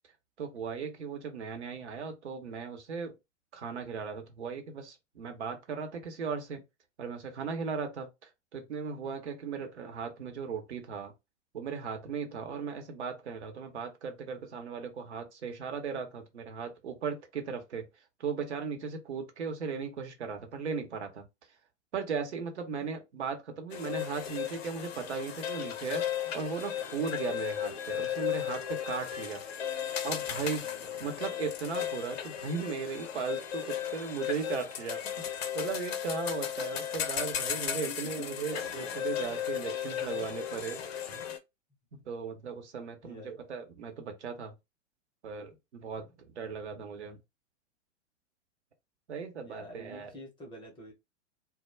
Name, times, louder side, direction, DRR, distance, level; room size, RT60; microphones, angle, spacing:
voice 1, 0.4-3.1 3.5-6.6 7.0-11.1 11.5-17.9 18.2-21.2 21.9-26.1 26.3-29.7 30.0-30.7 31.0-40.8 41.9-44.5 45.2-47.2 49.1-50.1, right 5 dB, 65° right, 0.9 m, -37 dB
sound 1, 23.7-41.4, left 9 dB, 55° left, 0.6 m, -35 dB
voice 2, 30.6-31.1 37.2-38.1 40.0-40.2 41.1-41.2 43.0-43.5 46.0-46.2 46.7-47.2 49.4-50.9, left 1 dB, 15° left, 0.5 m, -49 dB
2.2 x 2.1 x 3.1 m
figure-of-eight pair, 105°, 37 cm